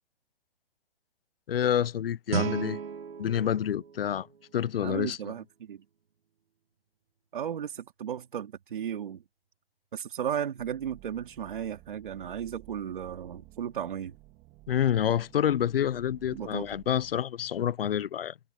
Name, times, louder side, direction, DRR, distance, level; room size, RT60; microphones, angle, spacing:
voice 1, 1.5-2.8 3.2-4.3 4.5-5.3 14.7-18.3, left 10 dB, 70° left, 0.6 m, -28 dB
Guitar, 2.3-5.1, right 7 dB, 75° right, 1.8 m, -35 dB
voice 2, 4.8-5.8 7.3-9.2 9.9-14.1 16.3-16.7, right 9 dB, 55° right, 2.6 m, -35 dB
sound 1, 10.6-17.2, right 17 dB, 15° right, 3.0 m, -54 dB
hypercardioid pair, 175°, 30 cm